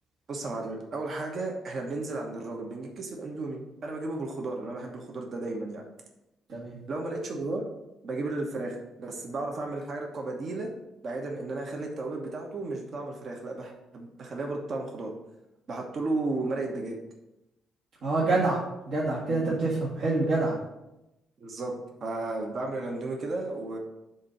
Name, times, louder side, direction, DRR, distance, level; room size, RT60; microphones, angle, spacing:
voice 1, 0.3-5.9 6.9-7.7 8.0-10.7 11.0-15.1 15.7-17.0 19.3-19.6 21.4-21.7 22.0-23.8, right 2 dB, 50° right, 1 dB, 1.0 m, -34 dB
voice 2, 18.0-18.6 18.9-20.5, right 2 dB, 65° right, -7 dB, 1.6 m, -26 dB
7.1 x 2.7 x 5.7 m, 0.92 s
cardioid pair, 110°, 0 cm